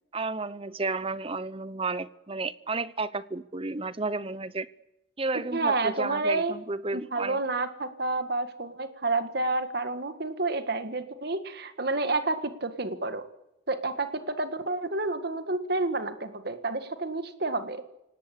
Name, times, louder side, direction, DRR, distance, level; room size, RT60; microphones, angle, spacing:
voice 1, 0.1-4.7 5.2-7.4, right 3 dB, 30° right, 0.8 m, -32 dB
voice 2, 5.5-6.5 6.9-13.3 13.7-17.8, right 2 dB, 55° right, 1.7 m, -29 dB
27.5 x 18.5 x 8.5 m
head